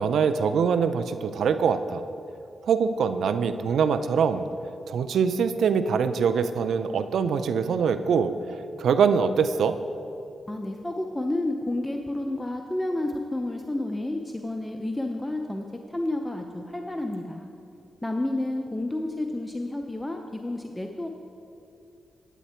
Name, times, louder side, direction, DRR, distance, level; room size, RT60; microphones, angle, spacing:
voice 1, 0.0-2.0 2.7-4.5 4.9-8.3 8.8-9.7, right 6 dB, 80° right, 11 dB, 0.4 m, -23 dB
voice 2, 10.5-17.5 18.0-21.1, left 1 dB, 15° left, 3 dB, 0.7 m, -30 dB
9.2 x 9.1 x 4.3 m, 2.6 s
cardioid pair, 60°, 0 cm